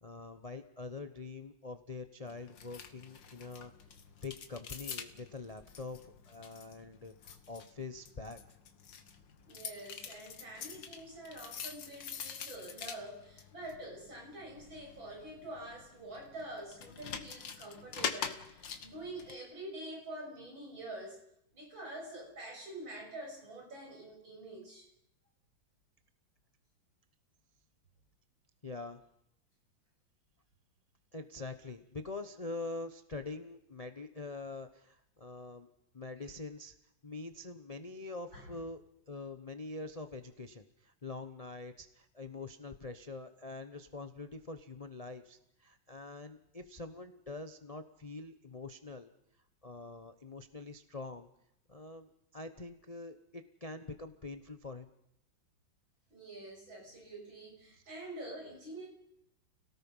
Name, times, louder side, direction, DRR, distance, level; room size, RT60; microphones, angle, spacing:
voice 1, 0.0-3.7 4.2-8.4 28.6-29.0 31.1-35.7 35.9-36.7 37.0-38.8 39.1-49.1 49.6-51.3 51.7-54.9, left 3 dB, 30° left, 9 dB, 0.6 m, -45 dB
sound 1, 2.3-19.3, left 7 dB, 65° left, 2.0 m, -46 dB
voice 2, 9.4-21.2 21.5-24.9 38.3-38.5 56.1-58.9, right 1 dB, 70° right, -1 dB, 7.6 m, -46 dB
30.0 x 18.0 x 5.6 m, 0.74 s
omnidirectional pair, 2.2 m